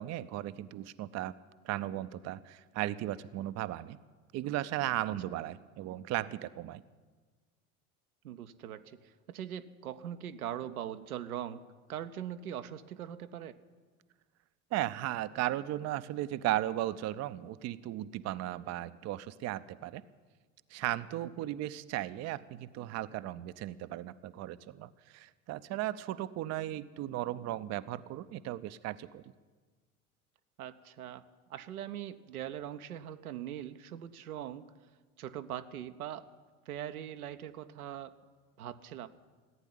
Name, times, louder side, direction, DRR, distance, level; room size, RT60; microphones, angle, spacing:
voice 1, 0.0-1.3 1.6-4.0 4.3-6.8 14.7-20.0 20.7-29.2, right 14 dB, 40° right, 14 dB, 0.6 m, -36 dB
voice 2, 8.2-11.6 11.9-13.6 30.6-31.2 31.5-34.6 35.2-36.3 36.7-38.2 38.6-39.1, right 10 dB, 80° right, 9 dB, 0.7 m, -41 dB
15.0 x 9.1 x 10.0 m, 1.4 s
figure-of-eight pair, 70°, 43 cm